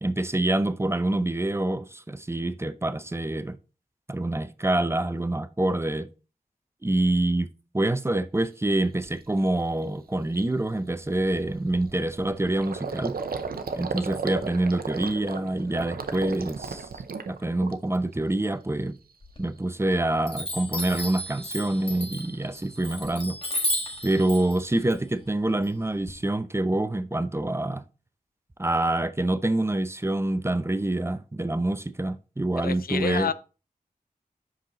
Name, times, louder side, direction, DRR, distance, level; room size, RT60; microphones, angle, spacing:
voice 1, 0.0-3.6 4.1-6.1 6.8-13.2 13.8-16.9 17.3-19.0 19.4-23.4 24.0-27.8 28.6-33.3, right 1 dB, 15° right, 0.6 m, -26 dB
Gurgling, 8.4-8.5 9.0-9.3 9.7-9.8 10.1-18.1 18.5-19.1, right 5 dB, 80° right, 0.7 m, -36 dB
Chime, 19.2-19.9 20.3-26.1, left 1 dB, 35° left, 1.5 m, -33 dB
voice 2, 32.6-33.3, left 7 dB, 75° left, 0.4 m, -29 dB
5.7 x 5.1 x 3.9 m
cardioid pair, 50°, 15 cm